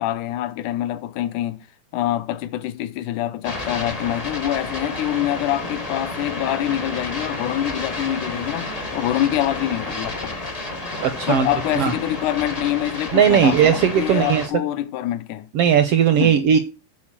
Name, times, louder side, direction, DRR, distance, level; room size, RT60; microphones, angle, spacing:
voice 1, 0.0-1.7 1.9-10.4 11.3-15.5 16.1-16.4, left 13 dB, 80° left, 2.2 m, -25 dB
sound 1, 3.4-14.5, left 2 dB, 60° left, 0.4 m, -31 dB
voice 2, 11.0-11.5 11.8-11.9 13.1-14.5 15.5-16.6, right 8 dB, 75° right, 1.4 m, -17 dB
8.7 x 4.6 x 7.3 m
omnidirectional pair, 3.6 m